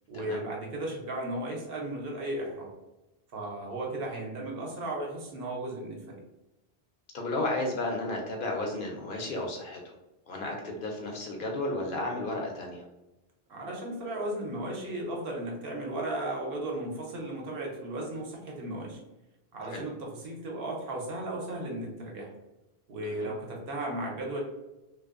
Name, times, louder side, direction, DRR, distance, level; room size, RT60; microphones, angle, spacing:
voice 1, 0.1-2.7 3.3-6.2 13.5-19.0 19.5-22.3 22.9-24.4, right 1 dB, 70° right, -1 dB, 0.9 m, -35 dB
voice 2, 7.1-9.9 10.3-12.9 19.7-19.8 23.0-23.3, left 2 dB, 65° left, 0 dB, 0.7 m, -33 dB
2.5 x 2.2 x 2.4 m, 0.97 s
omnidirectional pair, 1.0 m